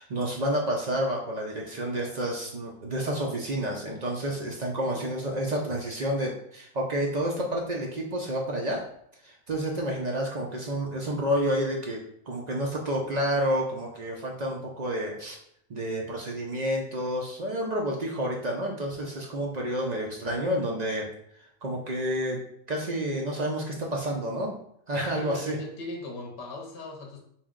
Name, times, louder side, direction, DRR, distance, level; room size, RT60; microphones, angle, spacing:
voice 1, 0.0-8.8 9.2-12.0 12.3-15.4 15.7-21.1 21.6-22.4 22.7-24.5 24.9-25.6, equal, 60° right, -1 dB, 0.4 m, -29 dB
voice 2, 25.2-27.2, left 2 dB, 55° left, 1 dB, 0.8 m, -39 dB
4.5 x 2.1 x 3.6 m, 0.70 s
omnidirectional pair, 1.4 m